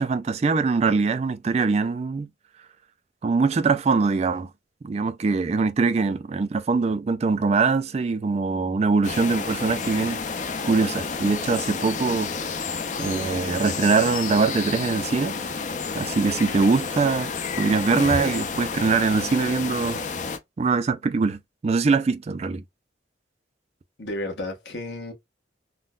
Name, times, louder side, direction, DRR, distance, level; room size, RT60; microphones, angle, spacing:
voice 1, 0.0-2.3 3.2-4.5 4.8-10.2 10.7-12.5 13.0-15.3 15.9-17.3 17.6-20.0 20.6-22.6, right 4 dB, 35° right, 0.3 m, -23 dB
sound 1, 9.0-20.4, left 5 dB, 45° left, 0.5 m, -30 dB
voice 2, 24.0-25.1, left 1 dB, 70° left, 1.1 m, -32 dB
3.6 x 2.2 x 2.3 m
head